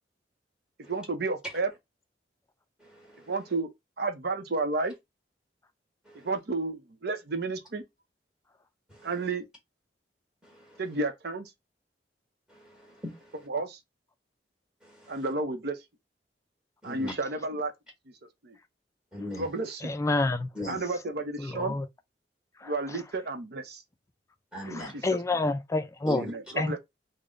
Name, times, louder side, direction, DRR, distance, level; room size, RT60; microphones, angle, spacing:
voice 1, 0.9-1.7 3.3-3.7 4.0-4.9 6.2-7.8 9.0-9.4 10.8-11.5 13.5-13.8 15.1-15.8 16.8-17.7 18.4-18.6 19.4-19.9 20.7-21.8 22.6-23.8 24.7-25.2 26.2-26.8, right 3 dB, 65° right, 0.7 m, -31 dB
voice 2, 2.8-3.4 6.0-6.3 8.9-9.1 10.4-10.8 12.5-13.5 14.8-15.2 16.8-17.1 19.1-19.6 20.5-20.9 24.5-24.9 26.1-26.5, left 1 dB, 5° right, 1.3 m, -40 dB
voice 3, 19.8-20.5 21.4-21.9 22.6-22.7 24.7-26.2 26.6-26.8, left 2 dB, 15° left, 0.4 m, -28 dB
3.5 x 2.1 x 3.6 m
head